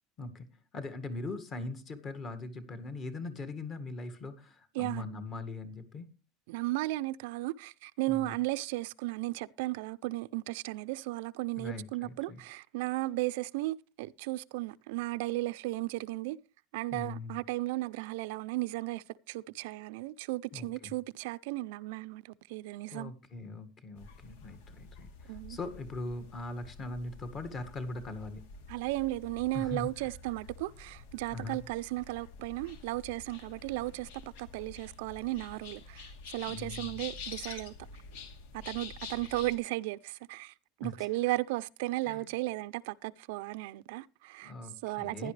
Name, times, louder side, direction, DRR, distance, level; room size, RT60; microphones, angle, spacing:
voice 1, 0.7-6.1 8.1-8.3 11.6-12.4 16.9-17.4 20.5-21.0 22.9-28.4 29.5-30.1 31.3-31.6 36.5-37.0 40.8-41.1 42.1-42.3 44.4-45.3, left 3 dB, 30° left, 1.9 m, -41 dB
voice 2, 6.5-16.4 16.7-23.1 25.3-25.6 28.7-37.7 38.6-40.5 40.8-44.5 44.8-45.3, right 19 dB, 75° right, 0.5 m, -35 dB
sound 1, 24.0-39.6, left 5 dB, 80° left, 2.6 m, -48 dB
16.0 x 10.5 x 3.3 m
cardioid pair, 155°, 0 cm